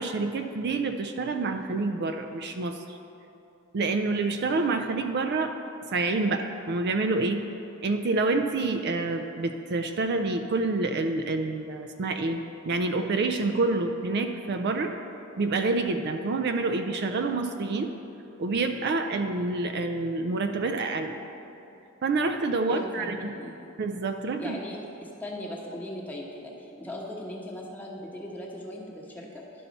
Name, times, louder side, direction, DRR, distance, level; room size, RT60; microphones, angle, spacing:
voice 1, 0.0-3.0 3.7-5.6 5.9-7.4 7.8-15.0 15.4-17.9 18.4-21.1 22.0-23.3 23.8-24.5, right 3 dB, 55° right, 6 dB, 0.4 m, -27 dB
voice 2, 22.7-23.1 23.4-23.6 24.4-29.4, left 1 dB, 10° left, -3 dB, 1.0 m, -39 dB
11.0 x 5.6 x 4.1 m, 2.8 s
head